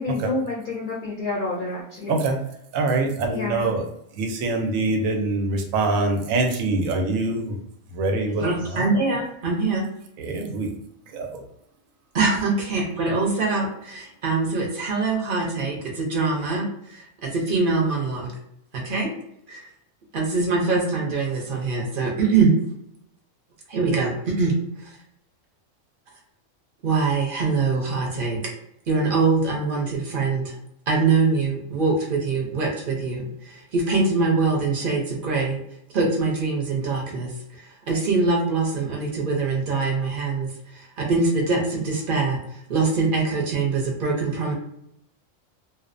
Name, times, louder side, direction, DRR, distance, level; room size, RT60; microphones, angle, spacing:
voice 1, 0.0-2.1 3.3-3.7 8.3-8.5, left 2 dB, 60° left, -5 dB, 0.5 m, -29 dB
voice 2, 2.7-3.8 4.1-7.6 7.9-8.9 10.2-10.7 11.1-11.4, right 2 dB, 90° right, 3 dB, 1.0 m, -24 dB
voice 3, 8.4-9.9 12.1-18.3 18.7-19.1 19.5-19.6 20.1-22.5 23.7-24.5 24.8-25.0 26.8-28.4 28.9-30.5 30.9-35.6 35.9-44.5, right 4 dB, 50° right, -2 dB, 0.7 m, -23 dB
2.7 x 2.0 x 2.5 m, 0.76 s
omnidirectional pair, 1.4 m